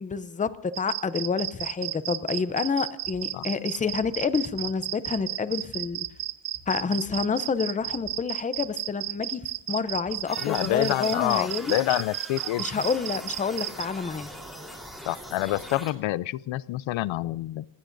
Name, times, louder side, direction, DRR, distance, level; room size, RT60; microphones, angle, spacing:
voice 1, 0.0-6.1 6.7-11.7 12.6-14.3, left 5 dB, 15° left, 14 dB, 0.5 m, -28 dB
sound 1, 0.7-13.8, right 13 dB, 85° right, 0.7 m, -33 dB
sound 2, 3.0-11.1, right 2 dB, 35° right, 4.0 m, -54 dB
sound 3, 10.3-15.9, equal, ahead, 3.7 m, -41 dB
voice 2, 10.4-12.7 15.0-17.7, left 16 dB, 90° left, 20 dB, 0.5 m, -27 dB
27.5 x 18.5 x 2.6 m, 0.77 s
wide cardioid pair, 150°, 45 cm